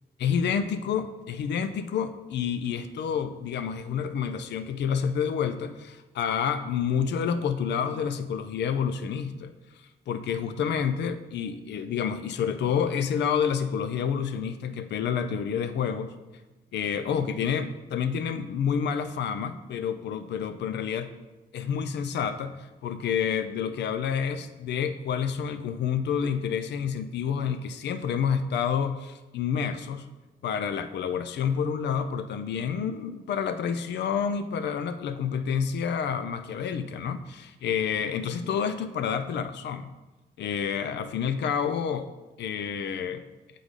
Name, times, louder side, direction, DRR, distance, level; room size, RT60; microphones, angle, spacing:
voice 1, 0.2-9.5 10.1-16.1 16.7-21.1 21.5-30.1 30.4-39.9 40.4-42.1 42.4-43.2, left 7 dB, 80° left, 10 dB, 0.4 m, -29 dB
8.1 x 3.9 x 4.9 m, 1.1 s
cardioid pair, 65°, 18 cm